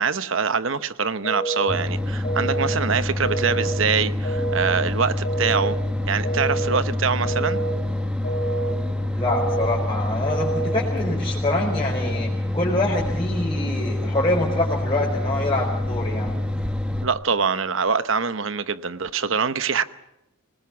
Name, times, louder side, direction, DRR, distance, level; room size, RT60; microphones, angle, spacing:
voice 1, 0.0-5.8 6.1-7.6 17.0-19.8, right 5 dB, 60° right, 13 dB, 1.0 m, -24 dB
sound 1, 1.2-1.7 2.2-2.7 3.2-3.7 4.2-4.7 5.2-5.7 6.2-6.7 7.2-7.7 8.2-8.7 9.2-9.7 10.2-10.7, right 2 dB, 40° left, 3.8 m, -28 dB
sound 2, 1.7-17.1, left 1 dB, 5° right, 1.8 m, -26 dB
voice 2, 9.1-16.3, left 2 dB, 25° left, -3 dB, 4.8 m, -25 dB
25.0 x 20.0 x 7.1 m, 0.89 s
head